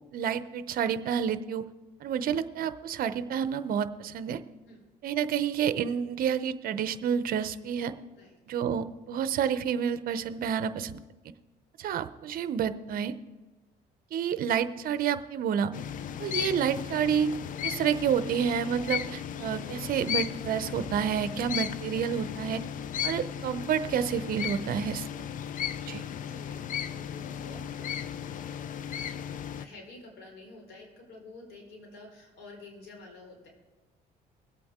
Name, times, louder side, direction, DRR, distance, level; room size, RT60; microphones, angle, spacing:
voice 1, 0.1-1.6 2.0-4.4 5.0-7.9 8.5-10.9 11.8-13.1 14.1-15.7 16.2-17.3 17.6-22.6 23.0-25.1 25.9-26.0, right 8 dB, 60° right, 12 dB, 0.7 m, -29 dB
sound 1, 15.7-29.7, left 9 dB, 50° left, 0.5 m, -35 dB
voice 2, 25.6-33.5, left 2 dB, 85° left, -1 dB, 4.8 m, -50 dB
21.5 x 8.4 x 3.7 m, 1.2 s
cardioid pair, 110°, 17 cm